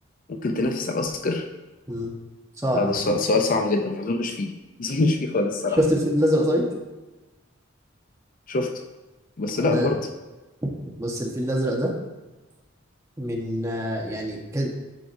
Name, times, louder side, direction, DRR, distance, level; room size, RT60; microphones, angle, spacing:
voice 1, 0.3-1.5 2.7-5.8 8.5-8.7 9.4-10.0, left 2 dB, 45° left, 5 dB, 0.5 m, -24 dB
voice 2, 2.6-2.9 5.8-6.7 9.6-9.9 10.6-10.7 11.0-11.9 13.2-14.7, equal, 15° right, -1 dB, 1.1 m, -24 dB
11.5 x 4.7 x 2.6 m, 1.1 s
head